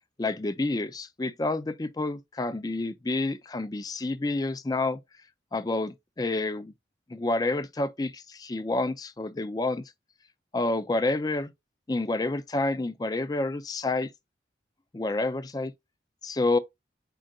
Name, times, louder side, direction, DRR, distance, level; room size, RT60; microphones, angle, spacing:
voice 1, 0.2-5.0 5.5-6.7 7.1-9.8 10.5-11.5 11.9-14.1 14.9-15.7 16.2-16.6, left 2 dB, 20° left, 0.4 m, -29 dB
4.4 x 3.8 x 2.7 m
head